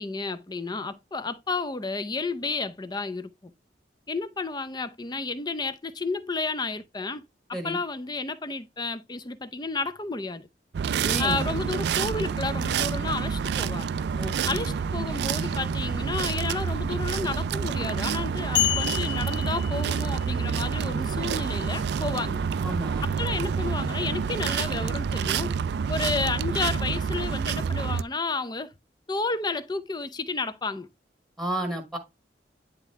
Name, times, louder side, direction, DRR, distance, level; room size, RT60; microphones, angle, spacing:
voice 1, 0.0-3.5 4.1-7.3 7.6-10.5 11.2-14.0 14.5-22.4 23.0-25.5 25.9-28.7 29.1-30.9, left 3 dB, 25° left, 0.6 m, -31 dB
sound 1, 10.7-28.0, right 6 dB, 65° right, 0.3 m, -28 dB
voice 2, 11.0-11.4 14.2-14.6 22.6-23.0 31.4-32.0, right 1 dB, ahead, 1.5 m, -32 dB
sound 2, 18.6-20.4, left 12 dB, 70° left, 1.0 m, -29 dB
10.0 x 3.6 x 3.3 m
head